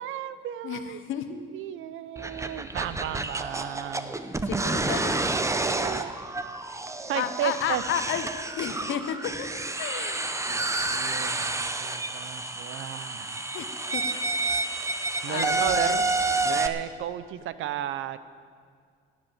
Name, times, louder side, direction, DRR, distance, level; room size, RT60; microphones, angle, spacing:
voice 1, 0.0-1.0 1.3-4.2 5.3-6.2 7.1-7.8 10.5-13.4 15.2-16.1 16.4-18.2, right 11 dB, 85° right, 14 dB, 0.7 m, -34 dB
voice 2, 0.6-1.3 4.4-5.2 7.1-8.3 8.6-9.5 9.8-10.4 13.5-14.0 14.4-14.6 15.3-16.0, left 9 dB, 85° left, 9 dB, 1.1 m, -32 dB
sound 1, 2.2-16.7, right 2 dB, 15° right, 0.8 m, -29 dB
18.0 x 7.5 x 7.7 m, 2.1 s
cardioid pair, 90°, 20 cm